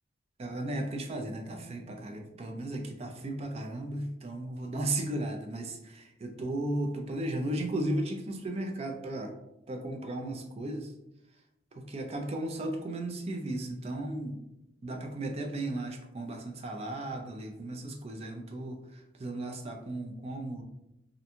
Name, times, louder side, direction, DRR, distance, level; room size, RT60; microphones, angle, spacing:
voice 1, 0.4-9.3 9.7-10.9 11.8-14.4 14.8-18.8 19.2-20.6, right 1 dB, 35° right, 4 dB, 0.4 m, -35 dB
2.5 x 2.2 x 2.8 m, 0.86 s
head